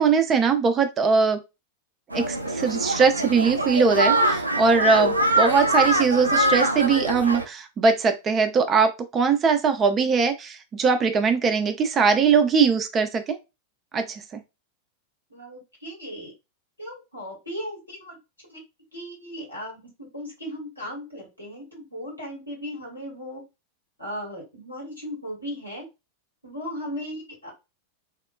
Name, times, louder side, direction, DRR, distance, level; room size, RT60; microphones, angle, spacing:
voice 1, 0.0-1.4 2.1-13.4 13.9-14.4, right 5 dB, 25° right, 8 dB, 0.5 m, -21 dB
sound 1, 2.1-7.4, right 1 dB, 85° right, 0.3 m, -23 dB
voice 2, 15.3-16.3 16.8-18.2 18.5-18.6 18.9-23.4 24.0-25.8 26.4-27.5, equal, 85° left, -2 dB, 1.6 m, -36 dB
3.5 x 2.2 x 2.3 m, 0.25 s
figure-of-eight pair, 90°, 0 cm